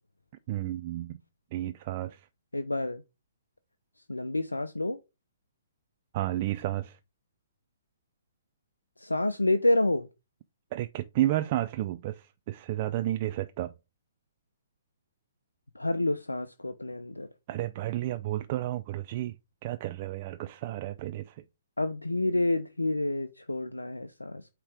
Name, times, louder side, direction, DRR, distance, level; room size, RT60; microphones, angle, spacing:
voice 1, 0.5-1.2 1.5-2.2 6.1-7.0 10.7-13.7 17.5-19.3 19.6-21.4, right 14 dB, 35° right, 0.4 m, -31 dB
voice 2, 2.5-3.0 4.1-5.0 9.0-10.1 15.7-17.3 21.8-24.5, left 2 dB, 80° left, 0.5 m, -28 dB
8.6 x 3.0 x 4.9 m
figure-of-eight pair, 120°, 0 cm